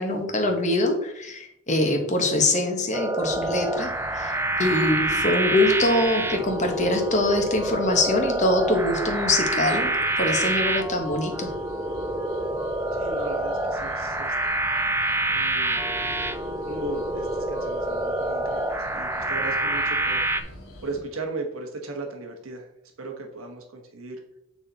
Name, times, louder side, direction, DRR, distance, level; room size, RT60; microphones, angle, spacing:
voice 1, 0.0-9.9 10.2-11.5, left 1 dB, 35° left, 3 dB, 1.2 m, -24 dB
sound 1, 2.9-20.4, right 2 dB, 10° right, 0.4 m, -27 dB
sound 2, 3.2-21.0, left 1 dB, 85° left, 1.9 m, -44 dB
voice 2, 12.9-14.5 15.3-15.8 16.6-20.3 20.8-22.7 23.0-24.2, right 3 dB, 90° right, 2 dB, 1.2 m, -37 dB
8.5 x 4.2 x 4.0 m, 0.80 s
head